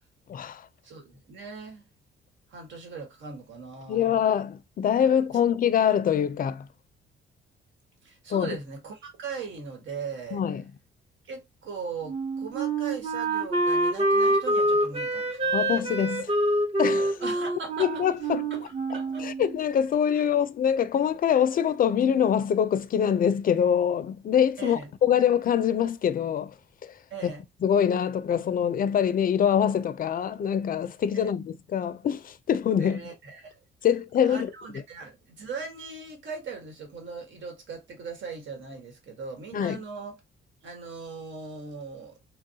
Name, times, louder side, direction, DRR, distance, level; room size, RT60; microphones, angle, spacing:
voice 1, 0.3-0.7 3.9-6.7 8.3-8.6 10.3-10.6 15.5-16.3 16.8-17.2 17.8-18.4 19.2-26.5 26.8-26.9 27.2-27.3 27.6-33.0 33.8-34.5 39.5-39.8, left 8 dB, 45° left, 0.4 m, -24 dB
voice 2, 0.8-1.8 2.5-4.1 5.1-5.2 8.0-10.4 11.2-15.7 17.2-18.0 18.5-19.3 20.1-20.2 24.6-24.9 27.1-27.4 31.1-31.3 32.8-33.5 34.3-40.1 40.6-42.2, right 4 dB, 70° right, 1.4 m, -39 dB
Wind instrument woodwind instrument, 12.1-19.6, right 1 dB, 30° right, 0.8 m, -26 dB
3.3 x 2.3 x 2.8 m
cardioid pair, 90°, 20 cm